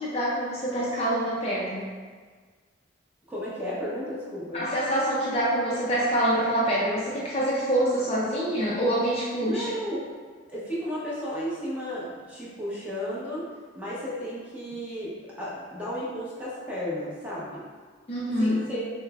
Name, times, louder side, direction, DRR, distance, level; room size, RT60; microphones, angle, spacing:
voice 1, 0.0-1.9 4.5-9.7 18.1-18.7, right 1 dB, 30° left, -6 dB, 0.5 m, -26 dB
voice 2, 3.3-4.6 9.4-10.1 10.5-13.5 13.7-17.6 18.4-18.8, equal, 10° right, -9 dB, 0.9 m, -33 dB
6.2 x 2.1 x 2.4 m, 1.5 s
head